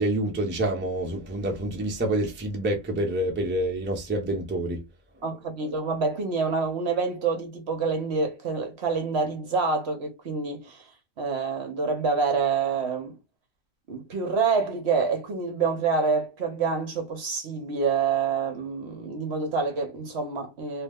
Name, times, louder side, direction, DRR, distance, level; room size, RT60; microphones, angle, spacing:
voice 1, 0.0-4.8, right 1 dB, 15° right, 0.4 m, -27 dB
voice 2, 5.2-10.9 11.2-13.2 13.9-20.8, right 4 dB, 55° right, 0.9 m, -27 dB
2.8 x 2.0 x 3.4 m
omnidirectional pair, 1.4 m